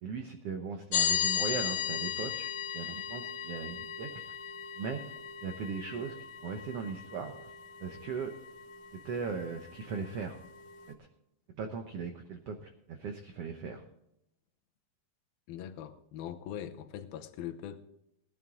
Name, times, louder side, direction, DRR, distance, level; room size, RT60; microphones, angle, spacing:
voice 1, 0.0-4.3 4.8-5.0 5.4-6.1 6.4-7.5 7.8-8.3 8.9-10.4 11.6-13.8, right 5 dB, 80° right, 6 dB, 1.3 m, -38 dB
sound 1, 0.9-10.9, left 9 dB, 70° left, 2.8 m, -37 dB
voice 2, 15.5-17.9, left 10 dB, 85° left, 8 dB, 2.8 m, -41 dB
18.0 x 11.0 x 3.7 m, 0.80 s
omnidirectional pair, 4.2 m